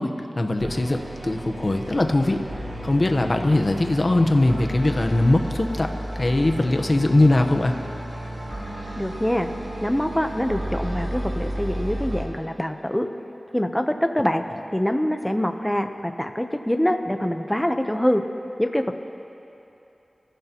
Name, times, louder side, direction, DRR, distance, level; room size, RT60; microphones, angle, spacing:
voice 1, 0.0-2.4 2.8-7.8, left 2 dB, 45° left, 5 dB, 1.1 m, -21 dB
sound 1, 0.6-12.2, right 1 dB, 70° right, 3.6 m, -33 dB
voice 2, 9.0-9.5 9.8-13.1 13.5-14.4 14.7-18.2 18.6-19.0, equal, 10° left, 6 dB, 0.9 m, -24 dB
27.0 x 15.0 x 3.1 m, 2.9 s
wide cardioid pair, 65°, 0 cm